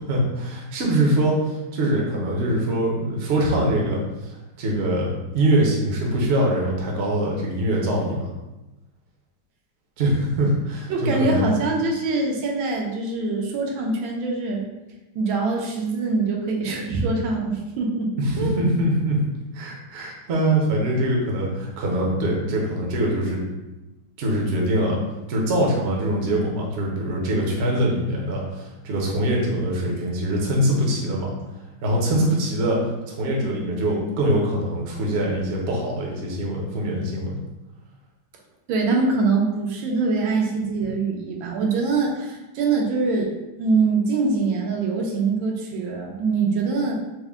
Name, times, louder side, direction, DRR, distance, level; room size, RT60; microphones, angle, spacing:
voice 1, 0.1-4.3 4.6-8.3 10.0-11.4 18.2-19.2 19.5-23.4 24.2-25.0 25.3-31.3 31.8-37.3, right 1 dB, 55° right, -2 dB, 0.7 m, -23 dB
voice 2, 10.9-14.6 15.1-18.6 38.7-43.3 43.6-46.9, right 3 dB, 85° right, 0 dB, 1.5 m, -23 dB
4.6 x 2.1 x 3.5 m, 1.0 s
omnidirectional pair, 2.1 m